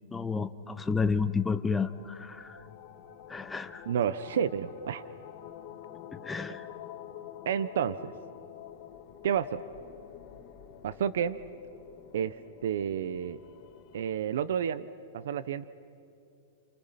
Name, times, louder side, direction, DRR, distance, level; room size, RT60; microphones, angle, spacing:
voice 1, 0.1-2.6 3.3-3.9 6.1-6.7, left 5 dB, 10° left, 9 dB, 0.7 m, -31 dB
sound 1, 1.1-14.2, left 10 dB, 35° left, 3.2 m, -48 dB
voice 2, 3.9-5.0 7.5-8.1 9.2-9.6 10.8-11.4 12.1-12.4 12.6-13.4 13.9-14.9 15.1-15.6, right 8 dB, 75° right, 15 dB, 0.8 m, -30 dB
29.5 x 28.5 x 5.8 m, 2.7 s
hypercardioid pair, 150°, 0 cm